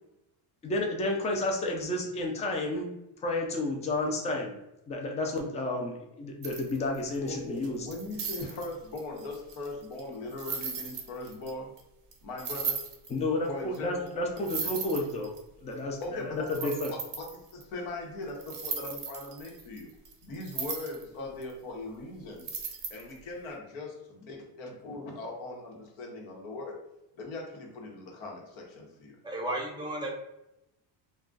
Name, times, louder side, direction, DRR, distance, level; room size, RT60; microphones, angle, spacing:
voice 1, 0.6-2.9 3.2-4.6 4.9-7.9 13.1-15.3 15.6-16.9, left 2 dB, 15° left, 1 dB, 0.4 m, -31 dB
sound 1, 6.4-7.2 7.6-11.5 11.8-11.9 12.1-12.2 12.4-13.2 13.7-13.8 14.1-14.2 14.4-15.4 16.0-16.1 16.5-17.6 18.4-21.0 21.4-21.5 22.4-23.2, right 6 dB, 45° right, 0.7 m, -37 dB
voice 2, 7.3-11.7 12.2-12.8 13.5-14.1 14.6-14.7 16.0-16.7 17.2-19.9 20.2-22.5 22.9-26.8 27.2-29.2, left 2 dB, 80° left, 0 dB, 1.1 m, -40 dB
voice 3, 29.2-30.1, right 1 dB, 10° right, -2 dB, 0.7 m, -33 dB
2.3 x 2.3 x 3.8 m, 0.87 s
cardioid pair, 130°, 47 cm